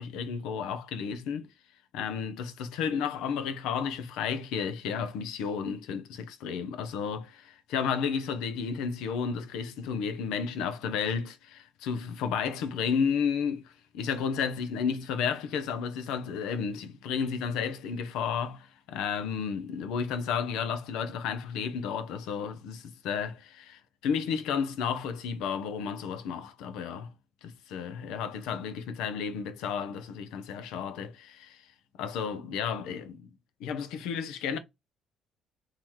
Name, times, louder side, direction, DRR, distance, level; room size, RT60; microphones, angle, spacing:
voice 1, 0.0-1.5 1.9-27.1 27.4-31.6 32.0-33.3 33.6-34.6, left 6 dB, 85° left, 0.7 m, -32 dB
3.0 x 2.9 x 3.7 m
cardioid pair, 130°, 0 cm